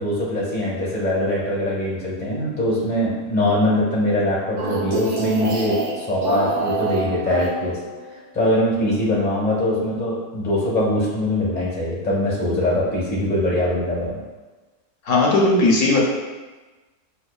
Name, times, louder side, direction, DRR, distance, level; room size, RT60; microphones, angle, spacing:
voice 1, 0.0-7.8 8.3-14.2, left 1 dB, 10° left, -6 dB, 0.6 m, -22 dB
sound 1, 4.6-8.1, right 3 dB, 85° right, 1.3 m, -26 dB
voice 2, 15.0-16.0, left 2 dB, 75° left, -3 dB, 1.2 m, -17 dB
6.0 x 2.0 x 2.3 m, 1.2 s
omnidirectional pair, 1.6 m